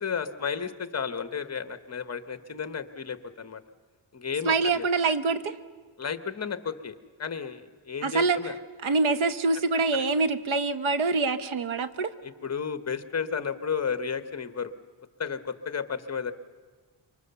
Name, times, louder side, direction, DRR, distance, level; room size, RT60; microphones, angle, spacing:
voice 1, 0.0-3.6 4.1-4.9 6.0-8.5 12.2-14.7 15.2-16.3, left 6 dB, 30° left, 11 dB, 1.1 m, -33 dB
voice 2, 4.4-5.6 8.0-8.4 8.8-12.1, right 3 dB, 75° right, 11 dB, 1.2 m, -25 dB
26.5 x 23.5 x 7.0 m, 1.5 s
wide cardioid pair, 140°, 48 cm